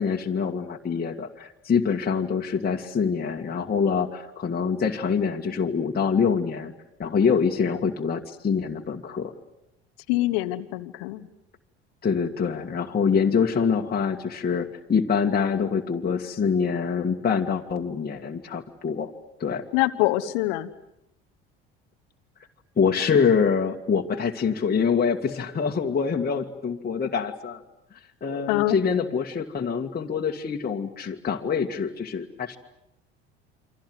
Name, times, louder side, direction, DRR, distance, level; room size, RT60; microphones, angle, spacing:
voice 1, 0.0-6.7 7.0-9.3 12.0-19.1 19.4-19.7 22.8-27.6 28.2-32.6, left 6 dB, 30° left, 0 dB, 2.1 m, -25 dB
voice 2, 10.1-11.2 19.7-20.7 28.5-28.8, left 18 dB, 70° left, 10 dB, 1.1 m, -24 dB
29.0 x 25.0 x 8.1 m, 0.86 s
hypercardioid pair, 65°, 29 cm